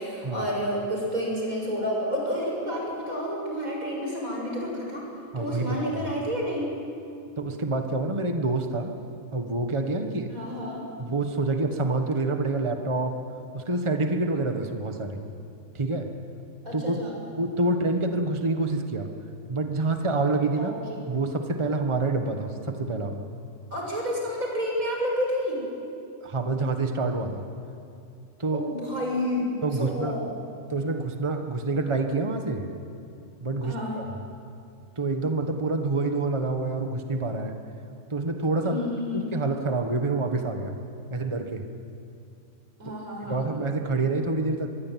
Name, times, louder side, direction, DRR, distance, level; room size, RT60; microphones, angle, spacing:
voice 1, 0.0-5.0 5.4-6.7 10.3-10.8 16.6-17.2 20.6-21.0 23.7-25.6 28.5-29.5 29.7-30.2 33.6-34.0 38.6-39.3 42.8-43.4, equal, 90° right, -1 dB, 7.3 m, -30 dB
voice 2, 5.3-6.0 7.4-8.9 9.3-10.3 11.0-13.2 13.5-15.2 15.7-16.1 16.7-17.0 17.4-19.1 19.5-20.7 21.1-23.3 26.2-27.4 28.4-28.6 29.6-30.2 30.7-32.7 33.4-34.2 35.0-37.6 38.1-38.8 39.1-40.8 41.1-41.7 42.9-43.0 43.2-44.7, right 3 dB, 20° right, 5 dB, 1.5 m, -27 dB
24.0 x 22.0 x 9.4 m, 2.6 s
omnidirectional pair, 1.4 m